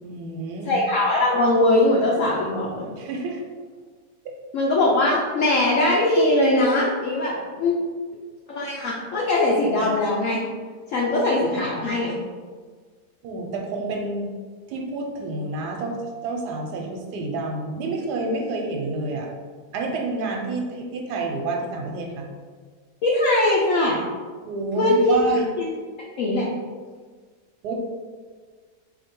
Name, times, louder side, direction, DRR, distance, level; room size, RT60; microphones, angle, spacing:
voice 1, 0.0-0.8 3.0-3.4 4.2-4.3 13.2-14.3 14.7-19.3 19.7-22.3 24.5-25.4 27.6-27.7, right 3 dB, 90° right, 1 dB, 1.2 m, -28 dB
voice 2, 0.6-2.9 4.5-7.8 8.5-10.4 10.9-12.2 23.0-24.0 24.8-25.2 25.6-25.7 26.2-26.5, left 2 dB, 60° left, -3 dB, 0.9 m, -21 dB
4.1 x 2.8 x 4.4 m, 1.5 s
omnidirectional pair, 1.7 m